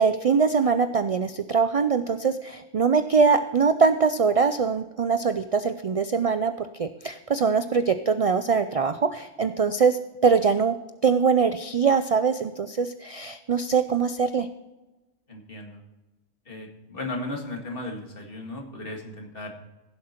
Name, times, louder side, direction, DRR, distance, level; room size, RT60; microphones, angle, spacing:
voice 1, 0.0-10.7 11.0-14.5, right 5 dB, 65° right, 10 dB, 0.3 m, -23 dB
voice 2, 15.3-15.8 16.5-19.5, left 2 dB, 45° left, 1 dB, 2.2 m, -36 dB
16.0 x 7.5 x 4.4 m, 1.1 s
omnidirectional pair, 1.3 m